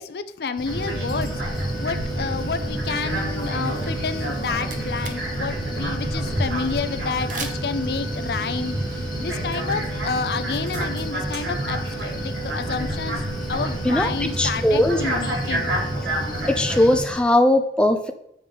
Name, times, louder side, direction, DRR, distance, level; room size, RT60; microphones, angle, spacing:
voice 1, 0.0-1.3 1.8-8.8 9.2-15.7, left 5 dB, 65° left, 12 dB, 0.5 m, -29 dB
Cricket, 0.6-17.2, left 1 dB, 25° left, 0.8 m, -36 dB
sound 1, 0.7-17.0, right 1 dB, 85° right, 2.4 m, -28 dB
sound 2, 4.3-5.4 5.6-5.7 7.3-7.9, right 6 dB, 45° right, 0.7 m, -36 dB
voice 2, 13.9-15.0 16.5-18.1, left 1 dB, 5° left, 5 dB, 0.3 m, -19 dB
7.8 x 4.9 x 3.6 m, 0.76 s
head